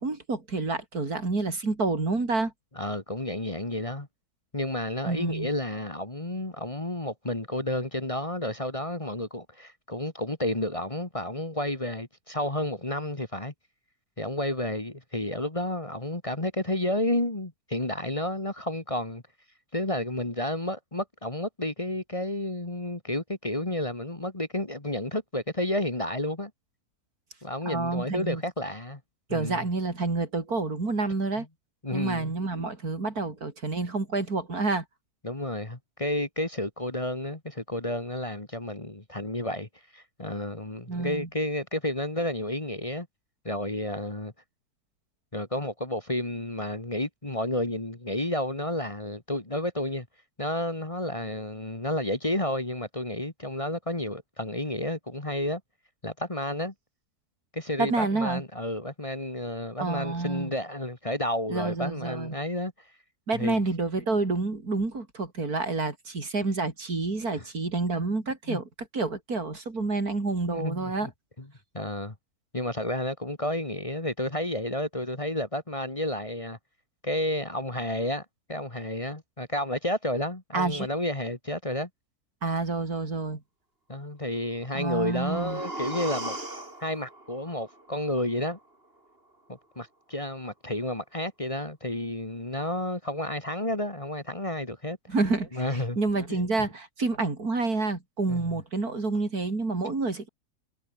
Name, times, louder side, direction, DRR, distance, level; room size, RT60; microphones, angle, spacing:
voice 1, 0.0-2.5 5.0-5.5 27.7-28.4 29.3-31.5 31.9-34.8 40.9-41.3 57.8-58.4 59.8-60.5 61.5-62.4 63.3-68.7 68.9-71.1 80.5-80.9 82.4-83.4 84.7-85.6 95.1-95.6 96.0-100.3, right 3 dB, 70° right, 4.5 m, -28 dB
voice 2, 2.8-4.1 4.5-13.5 14.2-19.2 19.7-26.5 27.4-29.0 29.3-29.7 31.4-31.5 31.8-32.3 35.2-39.7 39.9-43.1 43.4-44.3 45.3-50.1 50.4-55.6 56.0-56.7 57.5-62.7 63.3-63.6 67.4-67.5 68.5-68.6 70.5-71.1 71.4-71.5 71.7-72.1 72.5-76.6 77.0-81.9 83.9-86.4 86.8-88.6 89.5-95.0 95.5-96.0 96.3-96.5 98.3-98.5, left 1 dB, 20° left, 2.1 m, -31 dB
sound 1, 84.6-88.6 89.0-89.1, right 2 dB, 35° right, 5.6 m, -39 dB
omnidirectional pair, 1.6 m